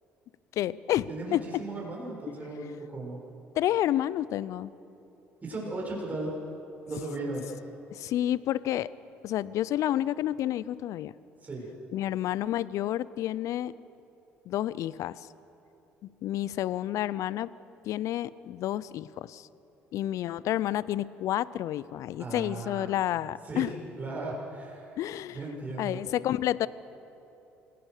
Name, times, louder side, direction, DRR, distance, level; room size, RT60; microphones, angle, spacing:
voice 1, 0.5-1.6 3.6-4.7 7.9-8.9 9.2-11.1 11.9-13.7 14.5-15.2 16.0-17.5 17.8-19.5 19.9-23.7 25.0-25.4 25.8-26.7, left 12 dB, 60° left, 19 dB, 0.6 m, -30 dB
voice 2, 1.1-3.2 5.4-6.3 6.9-7.5 11.4-11.7 22.2-22.9 23.4-23.7 24.0-25.0 25.3-26.0, right 2 dB, 25° right, -3 dB, 6.8 m, -36 dB
26.5 x 18.0 x 6.7 m, 2.9 s
hypercardioid pair, 55°, 6 cm